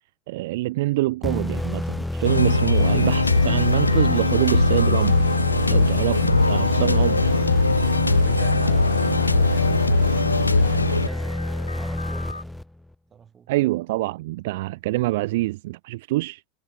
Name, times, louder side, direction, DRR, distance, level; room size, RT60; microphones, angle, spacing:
voice 1, 0.3-5.2 5.7-7.3 13.5-16.4, right 19 dB, 60° right, 0.4 m, -25 dB
sound 1, 1.2-12.9, left 1 dB, 5° left, 2.0 m, -28 dB
sound 2, 2.2-12.4, left 3 dB, 85° left, 0.4 m, -20 dB
voice 2, 8.2-12.5 13.1-13.5, right 7 dB, 30° right, 4.1 m, -46 dB
figure-of-eight pair, 75°, 0 cm